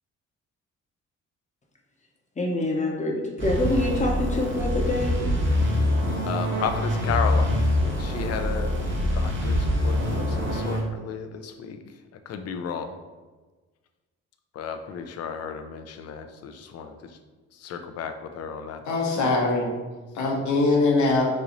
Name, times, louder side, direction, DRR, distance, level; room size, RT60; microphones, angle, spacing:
voice 1, 2.4-5.3, left 1 dB, 25° left, 0.8 m, -26 dB
Mopho + Ineko, 3.4-10.8, left 1 dB, 40° right, 0.9 m, -25 dB
voice 2, 6.2-7.6 7.8-8.8 9.1-11.8 12.1-13.0 14.5-17.2 17.5-18.8 20.2-20.5, left 6 dB, 55° left, 0.5 m, -33 dB
voice 3, 18.8-19.8 20.1-21.3, left 3 dB, 70° left, 0.9 m, -22 dB
3.1 x 2.7 x 3.8 m
cardioid pair, 90°, 30 cm